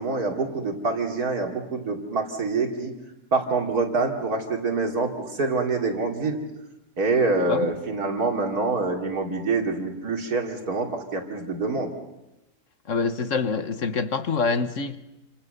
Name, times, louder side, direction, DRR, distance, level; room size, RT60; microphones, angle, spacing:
voice 1, 0.0-2.9 3.3-6.4 7.0-11.9, right 3 dB, 70° right, 3.4 m, -26 dB
voice 2, 12.9-15.0, left 4 dB, 55° left, 1.6 m, -26 dB
29.0 x 27.0 x 6.8 m
omnidirectional pair, 1.7 m